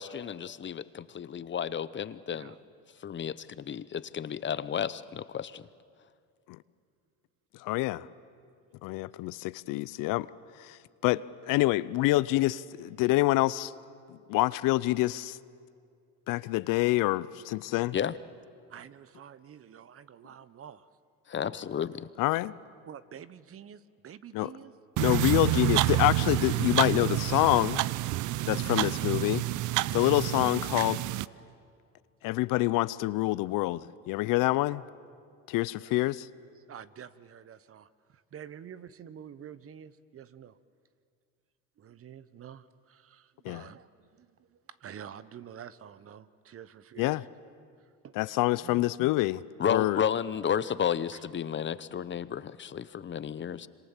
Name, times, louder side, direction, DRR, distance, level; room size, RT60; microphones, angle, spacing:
voice 1, 0.0-2.5 3.0-5.6 17.9-18.1 21.3-22.1 49.6-53.7, left 8 dB, 30° left, 16 dB, 0.8 m, -32 dB
voice 2, 2.3-2.6 18.7-20.9 22.9-24.7 35.7-36.1 36.6-40.6 41.8-47.2 47.8-48.8 51.1-51.2, right 9 dB, 40° right, 16 dB, 1.0 m, -48 dB
voice 3, 7.6-8.1 8.8-10.3 10.6-10.8 11.0-13.7 14.1-15.4 16.3-17.9 22.2-22.5 24.3-24.5 25.0-27.8 28.5-29.4 29.9-31.0 32.2-34.8 35.5-36.3 43.4-43.6 47.0-47.2 48.2-49.4 49.7-50.0, left 18 dB, 65° left, 18 dB, 0.7 m, -27 dB
sound 1, 25.0-31.2, right 17 dB, 55° right, 0.7 m, -28 dB
26.0 x 26.0 x 7.4 m, 2.2 s
supercardioid pair, 90°, 35 cm